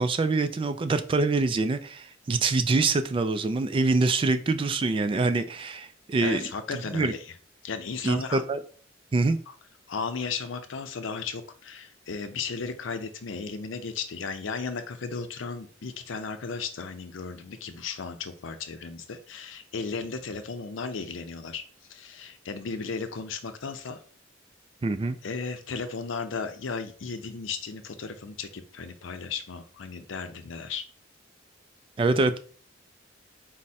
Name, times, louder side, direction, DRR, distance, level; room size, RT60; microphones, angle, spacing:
voice 1, 0.0-6.5 6.9-7.1 8.0-8.6 9.1-9.4 24.8-25.2 32.0-32.4, right 3 dB, 25° right, 10 dB, 0.3 m, -25 dB
voice 2, 6.2-7.3 7.6-8.4 9.5-9.6 9.9-24.0 25.2-30.8, left 5 dB, 85° left, 9 dB, 0.5 m, -35 dB
4.7 x 2.1 x 4.1 m, 0.43 s
head